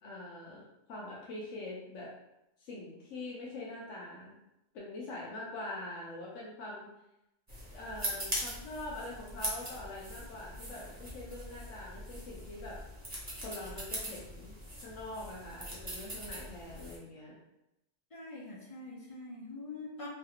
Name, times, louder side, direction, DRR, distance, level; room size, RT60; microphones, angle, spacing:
voice 1, 0.0-2.1 2.6-4.4 4.7-6.9 7.7-12.8 13.4-17.4, left 2 dB, 85° left, -5 dB, 1.1 m, -44 dB
sound 1, 7.5-17.0, equal, 15° right, 0.7 m, -41 dB
voice 2, 18.1-20.1, left 2 dB, 50° left, -4 dB, 0.4 m, -44 dB
3.2 x 2.4 x 2.8 m, 0.89 s
omnidirectional pair, 1.2 m